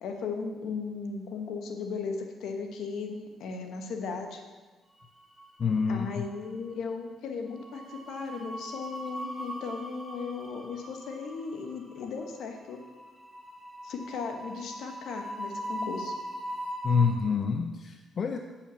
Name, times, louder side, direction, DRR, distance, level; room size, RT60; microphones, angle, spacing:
voice 1, 0.0-4.4 5.9-12.8 13.8-16.1, left 5 dB, 75° left, 4 dB, 1.3 m, -36 dB
sound 1, 5.0-5.8 6.1-6.4 7.5-17.1, equal, 10° left, 3.2 m, -40 dB
voice 2, 5.6-6.3 16.8-18.4, left 5 dB, 50° left, 5 dB, 0.6 m, -27 dB
8.7 x 5.6 x 6.2 m, 1.3 s
cardioid pair, 90°, 0 cm